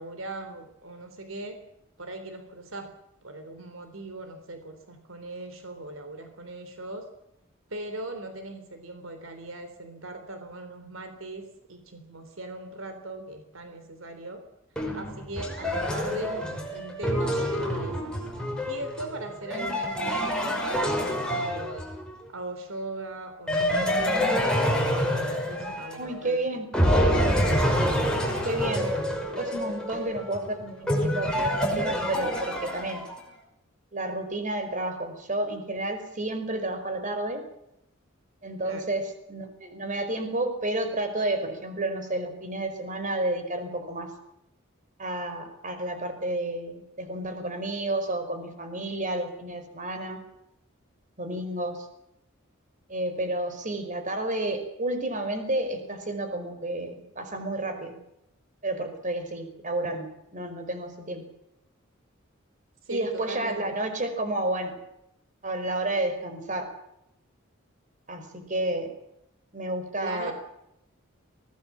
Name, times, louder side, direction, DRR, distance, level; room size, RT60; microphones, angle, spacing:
voice 1, 0.0-1.6 2.0-2.9 3.2-7.1 7.7-14.4 14.9-18.1 18.6-21.8 22.3-24.4 25.0-26.4 38.6-38.9 62.8-63.7 70.0-70.3, right 2 dB, 75° right, 7 dB, 3.5 m, -39 dB
sound 1, 14.8-22.2 23.5-26.3 26.7-33.2, equal, 5° left, 5.8 m, -27 dB
voice 2, 26.0-26.7 28.4-28.9 29.4-33.0 33.9-37.4 38.4-39.0 39.3-44.1 45.0-50.2 51.2-51.9 52.9-57.9 58.6-60.1 60.3-61.2 62.9-64.7 65.4-66.7 68.1-68.9 69.5-70.3, right 1 dB, 40° right, 7 dB, 5.0 m, -31 dB
24.5 x 18.5 x 7.5 m, 0.82 s
head